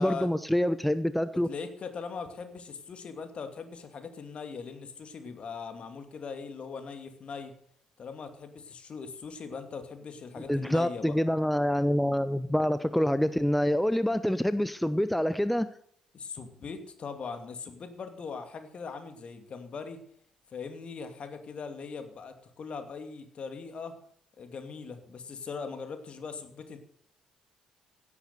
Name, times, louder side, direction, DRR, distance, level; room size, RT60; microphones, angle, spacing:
voice 1, 0.0-1.5 10.5-15.7, equal, 5° left, 14 dB, 0.7 m, -26 dB
voice 2, 1.5-7.5 8.0-11.2 16.1-20.0 20.5-23.9 24.4-26.8, left 5 dB, 45° left, 8 dB, 2.5 m, -40 dB
16.5 x 8.6 x 6.8 m, 0.65 s
figure-of-eight pair, 45°, 3 cm